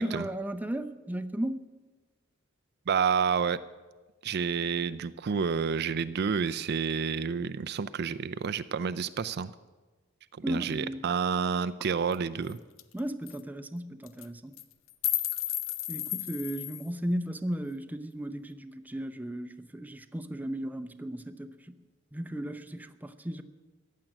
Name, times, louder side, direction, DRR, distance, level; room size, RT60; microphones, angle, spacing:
voice 1, 0.0-1.7 10.4-11.0 12.9-14.5 15.9-21.8 22.1-23.4, right 1 dB, 10° right, 0.6 m, -35 dB
voice 2, 2.9-3.6 4.2-9.5 10.5-12.6, right 6 dB, 55° right, 0.4 m, -29 dB
sound 1, 12.1-12.2 12.5-12.6 12.8-13.0 13.3-13.4 14.0-14.3 14.6-16.9, left 12 dB, 80° left, 0.7 m, -33 dB
15.0 x 7.6 x 10.0 m
head